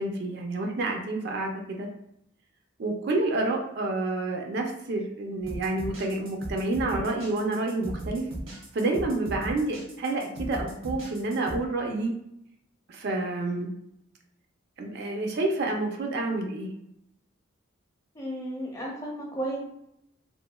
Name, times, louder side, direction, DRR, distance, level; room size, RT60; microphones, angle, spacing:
voice 1, 0.0-1.9 2.8-8.3 8.7-12.2 12.9-13.7 14.8-16.7, right 2 dB, 55° right, 2 dB, 0.4 m, -29 dB
sound 1, 5.4-11.6, right 1 dB, 75° right, 0.7 m, -37 dB
voice 2, 18.1-19.6, right 1 dB, 15° left, -3 dB, 0.5 m, -33 dB
3.0 x 2.1 x 2.2 m, 0.79 s
head